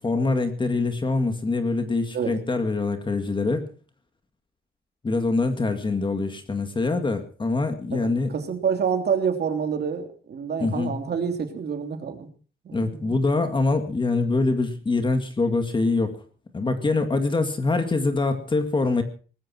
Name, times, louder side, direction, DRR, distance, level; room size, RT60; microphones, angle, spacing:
voice 1, 0.0-3.6 5.0-8.3 10.6-11.0 12.7-16.2 16.5-19.0, left 3 dB, 25° left, 7 dB, 2.0 m, -24 dB
voice 2, 7.9-12.3 12.6-13.1, right 6 dB, 50° right, 5 dB, 3.1 m, -27 dB
19.5 x 14.5 x 4.4 m, 0.39 s
wide cardioid pair, 180°, 21 cm